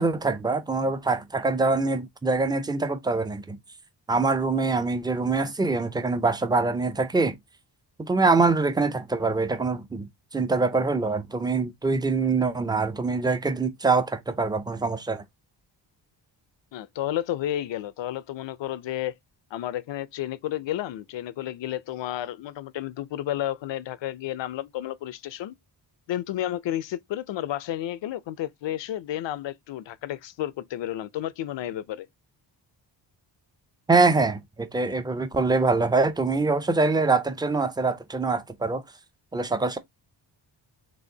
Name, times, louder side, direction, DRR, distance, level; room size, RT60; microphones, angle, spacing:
voice 1, 0.0-3.6 4.1-7.4 8.0-15.2 33.9-38.8 39.3-39.8, right 3 dB, 10° right, 0.5 m, -24 dB
voice 2, 16.7-19.1 19.5-25.6 26.1-32.1, left 12 dB, 75° left, 0.6 m, -31 dB
6.2 x 2.5 x 2.7 m
wide cardioid pair, 135°, 45 cm